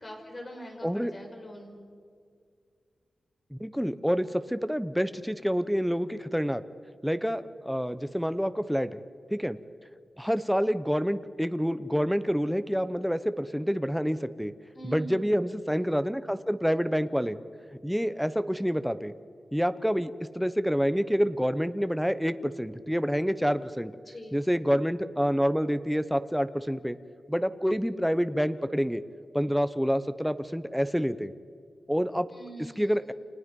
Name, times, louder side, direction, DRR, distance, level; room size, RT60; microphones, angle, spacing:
voice 1, 0.0-1.8 14.7-15.4 24.0-24.4 32.3-33.1, equal, 30° left, 2 dB, 5.1 m, -43 dB
voice 2, 3.5-6.6 7.0-9.0 9.3-9.6 10.2-14.5 14.9-17.4 17.8-19.1 19.5-23.9 24.3-27.0 27.3-29.0 29.3-31.3 31.9-32.3 32.8-33.1, equal, ahead, 12 dB, 0.9 m, -27 dB
29.5 x 28.5 x 5.4 m, 2.2 s
wide cardioid pair, 135°, 0 cm